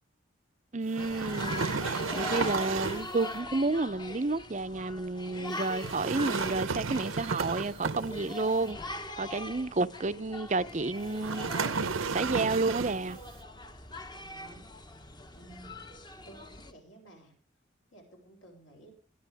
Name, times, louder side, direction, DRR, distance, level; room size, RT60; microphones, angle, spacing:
voice 1, 0.7-8.8 9.2-11.5 12.0-13.2, right 3 dB, 35° right, 0.6 m, -31 dB
sound 1, 0.9-3.2 5.7-8.4 11.2-13.1, right 5 dB, 90° right, 0.8 m, -33 dB
sound 2, 1.0-16.7, left 2 dB, 20° left, 0.9 m, -42 dB
voice 2, 14.1-15.8 16.2-17.3 17.9-18.9, right 2 dB, 70° left, 6.5 m, -54 dB
20.0 x 11.0 x 3.5 m
head